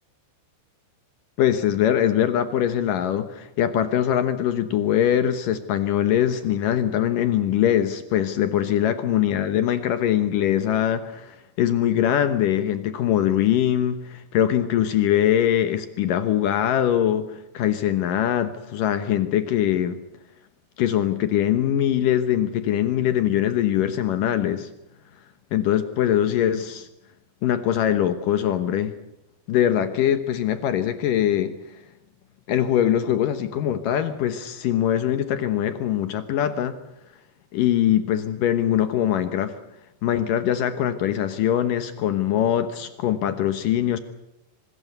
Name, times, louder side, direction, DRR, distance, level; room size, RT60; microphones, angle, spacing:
voice 1, 1.4-20.0 20.8-24.7 25.5-26.9 27.4-28.9 29.5-31.5 32.5-36.8 37.5-39.5 40.0-44.0, left 10 dB, 85° left, 10 dB, 1.9 m, -22 dB
25.0 x 20.5 x 8.1 m, 0.87 s
omnidirectional pair, 5.6 m